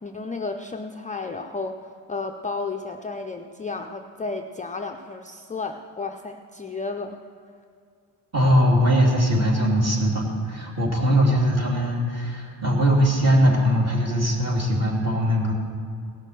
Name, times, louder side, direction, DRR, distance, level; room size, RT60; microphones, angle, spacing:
voice 1, 0.0-7.2, left 3 dB, 20° left, 4 dB, 0.4 m, -32 dB
voice 2, 8.3-15.5, equal, 35° right, -2 dB, 3.0 m, -20 dB
17.5 x 6.4 x 6.6 m, 2.3 s
cardioid pair, 115°, 44 cm